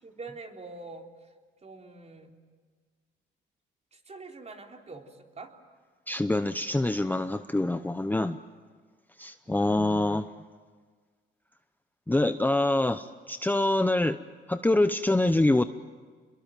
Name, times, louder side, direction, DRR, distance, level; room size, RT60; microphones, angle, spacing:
voice 1, 0.0-1.3 1.6-2.4 3.9-5.5 9.4-10.1, right 3 dB, 35° right, 2 dB, 3.8 m, -45 dB
voice 2, 6.1-8.4 9.2-10.3 12.1-14.2 14.5-15.6, left 2 dB, 10° left, 10 dB, 0.8 m, -25 dB
28.5 x 22.5 x 9.2 m, 1.5 s
cardioid pair, 90°, 20 cm